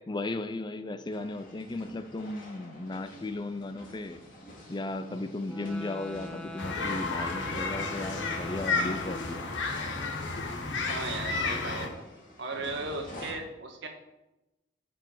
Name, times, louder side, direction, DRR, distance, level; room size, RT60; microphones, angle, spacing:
voice 1, 0.1-4.2 4.7-9.4, left 2 dB, 25° left, 10 dB, 0.4 m, -36 dB
sound 1, 1.1-13.3, left 1 dB, 45° left, 2.6 m, -49 dB
sound 2, 5.4-10.0, left 1 dB, 5° left, 0.9 m, -43 dB
sound 3, 6.6-11.9, left 3 dB, 70° left, 1.4 m, -32 dB
voice 2, 10.8-12.1 12.4-13.9, right 3 dB, 70° right, 3 dB, 1.6 m, -36 dB
9.9 x 5.3 x 5.5 m, 0.96 s
head